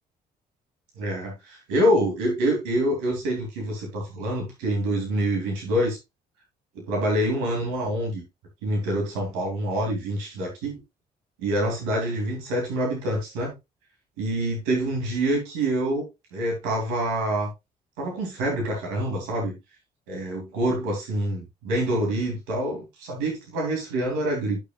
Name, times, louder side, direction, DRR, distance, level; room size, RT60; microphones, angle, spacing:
voice 1, 1.0-6.0 6.7-8.2 8.6-10.8 11.4-13.5 14.2-17.5 18.0-19.6 20.1-24.6, right 1 dB, 90° right, 2.9 m, -26 dB
10.0 x 6.6 x 2.4 m
supercardioid pair, 55°, 19 cm